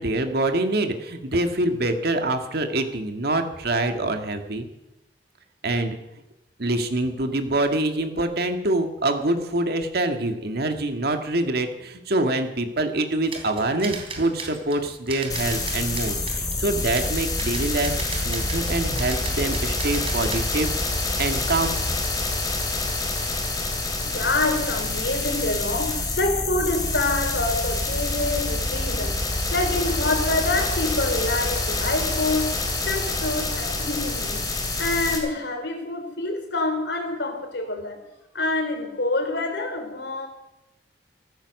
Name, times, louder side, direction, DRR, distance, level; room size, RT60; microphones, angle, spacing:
voice 1, 0.0-4.7 5.6-6.0 6.6-20.7 21.2-21.8, right 2 dB, 60° right, 6 dB, 1.9 m, -25 dB
sound 1, 13.3-20.5 21.0-21.3 22.6-22.9 23.1-23.5, right 4 dB, 30° right, 3.1 m, -37 dB
sound 2, 15.3-35.2, left 2 dB, 20° left, 3.3 m, -27 dB
voice 2, 24.1-32.5 32.9-34.4 34.8-38.0 38.3-40.3, left 2 dB, 70° left, 5 dB, 3.6 m, -26 dB
15.0 x 14.5 x 6.5 m, 0.92 s
head